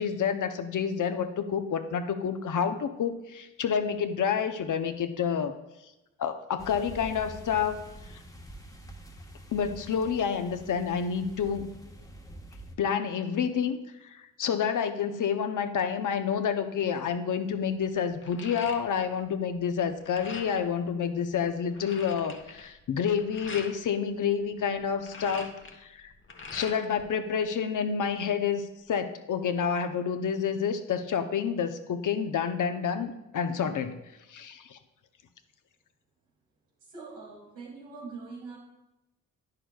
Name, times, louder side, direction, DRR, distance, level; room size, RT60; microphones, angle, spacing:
voice 1, 0.0-5.5 6.2-7.8 9.5-11.7 12.8-25.5 25.8-26.1 26.5-34.0 34.3-34.8, left 7 dB, 50° left, 9 dB, 0.7 m, -29 dB
sound 1, 6.6-12.8, right 1 dB, 10° left, 1.2 m, -46 dB
sound 2, 16.8-17.1 17.5-19.3 19.6-20.7 21.2-21.3 21.5-23.7 24.8-27.0 27.4-28.2, left 3 dB, 30° left, 1.0 m, -44 dB
voice 2, 36.8-38.6, right 4 dB, 85° right, -3 dB, 2.3 m, -43 dB
9.9 x 6.5 x 2.3 m, 0.96 s
hypercardioid pair, 40°, 38 cm